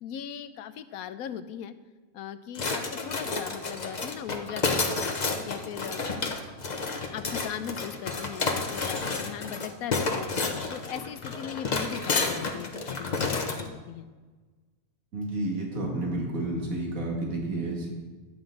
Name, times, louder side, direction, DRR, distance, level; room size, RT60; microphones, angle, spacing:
voice 1, 0.0-1.7 2.1-5.1 5.4-6.0 7.1-10.3 10.7-14.1, left 9 dB, 85° left, 12 dB, 1.1 m, -38 dB
sound 1, 2.6-13.7, left 3 dB, 35° left, 0.9 m, -30 dB
voice 2, 15.1-17.9, right 2 dB, 70° right, -1 dB, 2.5 m, -30 dB
13.0 x 8.9 x 3.9 m, 1.3 s
omnidirectional pair, 1.5 m